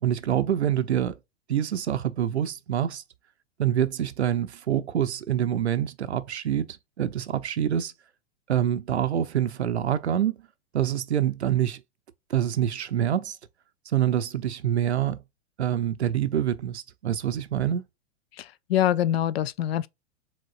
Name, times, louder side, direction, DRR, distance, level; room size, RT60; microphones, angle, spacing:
voice 1, 0.0-1.1 1.5-3.0 3.6-7.9 8.5-10.4 10.7-11.8 12.3-13.4 13.9-15.2 15.6-17.8, right 10 dB, 80° right, 0.6 m, -26 dB
voice 2, 18.4-19.9, left 11 dB, 70° left, 0.5 m, -25 dB
4.9 x 3.6 x 2.4 m
figure-of-eight pair, 100°, 33 cm